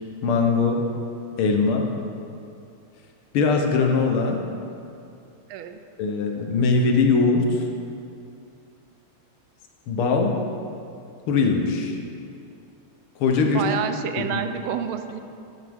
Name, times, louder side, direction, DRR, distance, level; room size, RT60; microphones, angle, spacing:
voice 1, 0.2-0.8 1.4-1.9 3.3-4.4 6.0-7.7 9.9-10.3 11.3-12.0 13.2-13.6 14.2-14.4, left 4 dB, 85° left, 2 dB, 1.8 m, -21 dB
voice 2, 13.4-15.2, right 8 dB, 85° right, 8 dB, 1.5 m, -29 dB
12.0 x 8.3 x 3.6 m, 2.5 s
omnidirectional pair, 2.3 m